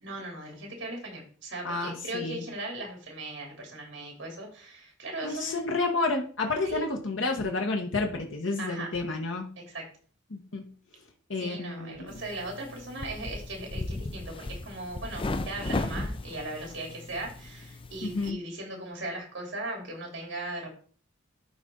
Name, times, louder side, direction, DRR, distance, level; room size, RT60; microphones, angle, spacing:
voice 1, 0.0-5.6 6.6-6.9 8.6-8.9 9.7-9.8 11.4-20.7, right 1 dB, 65° right, 0 dB, 3.2 m, -38 dB
voice 2, 1.6-2.4 5.2-9.5 10.3-10.7 11.3-12.2 18.0-18.4, left 3 dB, 85° left, 3 dB, 1.2 m, -30 dB
sound 1, 12.1-18.3, left 2 dB, 25° left, 0.5 m, -36 dB
12.0 x 4.1 x 3.8 m, 0.42 s
head